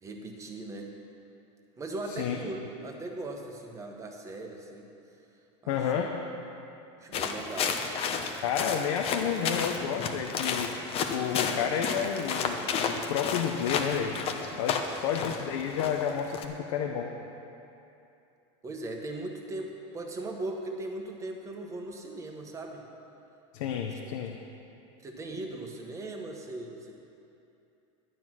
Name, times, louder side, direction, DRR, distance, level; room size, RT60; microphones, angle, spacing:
voice 1, 0.0-0.9 1.8-4.9 5.6-6.1 7.0-8.0 18.6-22.8 23.8-24.0 25.0-27.0, right 2 dB, 20° right, 2 dB, 1.3 m, -39 dB
voice 2, 5.7-6.1 8.4-14.2 14.5-17.1 23.5-24.4, left 7 dB, 80° left, 2 dB, 1.0 m, -31 dB
sound 1, 7.1-16.4, left 6 dB, 35° left, 0.9 m, -32 dB
11.5 x 9.4 x 6.1 m, 2.8 s
supercardioid pair, 145°, 16 cm